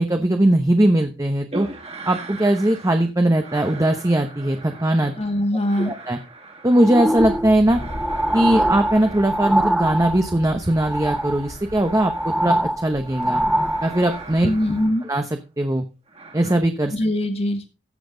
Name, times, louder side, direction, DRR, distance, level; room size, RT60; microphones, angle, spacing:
voice 1, 0.0-1.7 2.1-5.1 5.9-6.2 6.6-7.8 8.3-13.4 13.8-14.5 15.1-15.2 15.6-15.9 16.3-16.9, right 1 dB, 20° right, 5 dB, 0.9 m, -20 dB
sound 1, 1.5-3.1 3.4-12.7 13.0-15.4 16.1-16.6, right 2 dB, 35° right, 2.3 m, -40 dB
voice 2, 5.2-5.9 14.4-15.0 16.9-17.7, left 1 dB, 35° left, 6 dB, 1.8 m, -22 dB
sound 2, 6.8-10.5 10.8-11.5 11.8-14.2 14.8-14.9, right 1 dB, ahead, 0.5 m, -23 dB
sound 3, 7.2-14.9, equal, 55° left, 3.0 m, -39 dB
14.5 x 7.7 x 3.9 m, 0.29 s
head